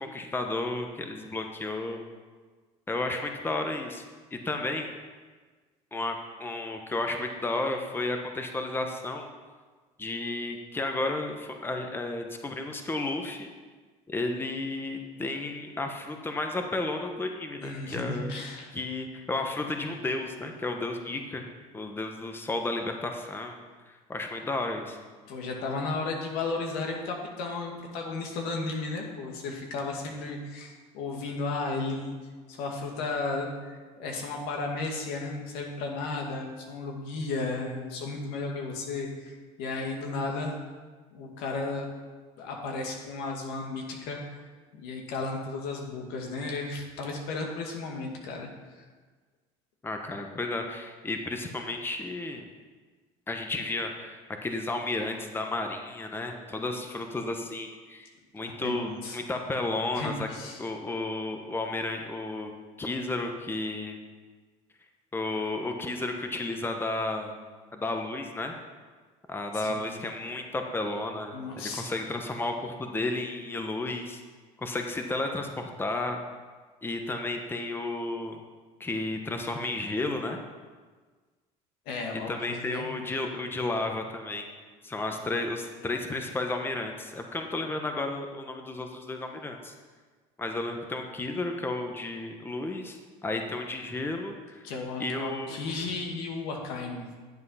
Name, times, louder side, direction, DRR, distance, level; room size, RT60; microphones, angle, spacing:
voice 1, 0.0-2.0 2.9-4.0 4.3-4.9 5.9-9.3 10.0-13.5 14.1-18.3 18.7-21.4 21.7-23.6 23.9-25.0 49.8-52.5 53.3-60.3 60.6-62.5 62.8-64.0 65.1-67.4 67.7-68.6 69.3-74.2 74.6-76.2 76.8-78.4 78.8-80.4 82.3-84.4 84.8-89.7 90.4-94.7 95.0-95.6, left 2 dB, 15° left, 4 dB, 1.1 m, -32 dB
voice 2, 17.6-18.7 25.3-32.2 32.5-40.5 41.1-41.9 42.4-44.4 44.7-48.8 58.4-59.2 59.9-60.7 69.5-70.0 71.3-71.9 81.9-82.9 94.6-97.1, left 3 dB, 75° left, 1 dB, 2.3 m, -34 dB
10.5 x 7.6 x 5.7 m, 1.4 s
supercardioid pair, 100°, 16 cm